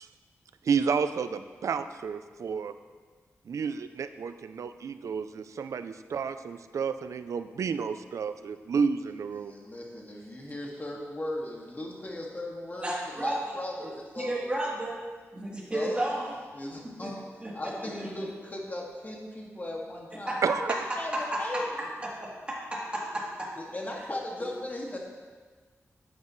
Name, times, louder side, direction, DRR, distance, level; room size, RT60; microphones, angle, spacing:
voice 1, 0.6-2.7 3.5-9.5 20.4-20.8, right 6 dB, 85° right, 11 dB, 0.5 m, -31 dB
voice 2, 9.4-14.7 15.5-16.0 16.5-17.2 17.5-20.4 20.7-21.7 23.6-25.0, left 1 dB, 35° left, -2 dB, 2.1 m, -37 dB
voice 3, 12.8-13.4 14.2-14.9 15.3-16.3 17.0-17.1 17.4-18.1 20.3-20.4 21.1-21.4 22.0-23.5, right 1 dB, 20° right, -6 dB, 3.2 m, -33 dB
12.0 x 9.5 x 3.2 m, 1.5 s
wide cardioid pair, 85°, 5 cm